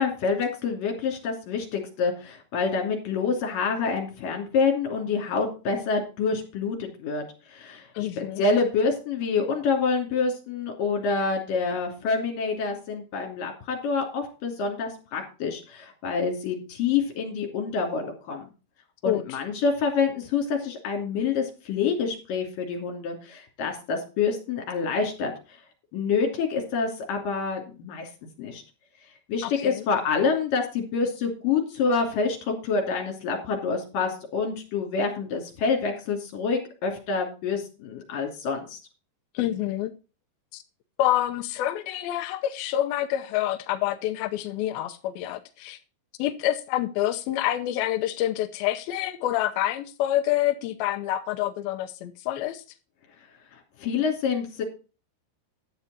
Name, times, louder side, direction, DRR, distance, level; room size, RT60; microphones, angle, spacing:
voice 1, 0.0-7.9 8.2-18.5 19.0-25.3 25.9-28.1 28.4-28.6 29.3-38.8 53.8-54.6, left 5 dB, 55° left, 4.1 m, -27 dB
voice 2, 8.0-8.4 19.1-19.4 29.4-29.9 39.3-39.9 40.5-40.6 41.0-45.8 46.2-52.6, left 13 dB, 85° left, 2.2 m, -27 dB
11.5 x 8.1 x 4.2 m
omnidirectional pair, 5.2 m